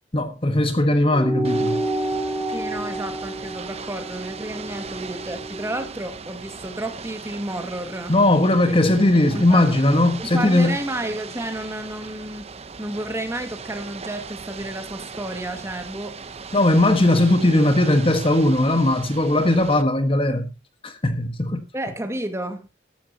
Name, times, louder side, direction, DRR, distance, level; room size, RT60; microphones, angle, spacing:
voice 1, 0.1-1.8 8.1-10.8 16.5-20.5 20.8-21.6, left 1 dB, 30° left, 1.4 m, -18 dB
sound 1, 1.1-5.9, right 1 dB, ahead, 1.5 m, -29 dB
Ocean / Boat Water vehicle, 1.4-19.8, right 5 dB, 35° right, 0.8 m, -38 dB
voice 2, 2.5-8.1 8.7-8.8 9.3-9.7 10.2-12.5 12.8-16.2 21.7-22.7, right 1 dB, 15° right, 2.0 m, -31 dB
14.5 x 13.0 x 2.9 m
head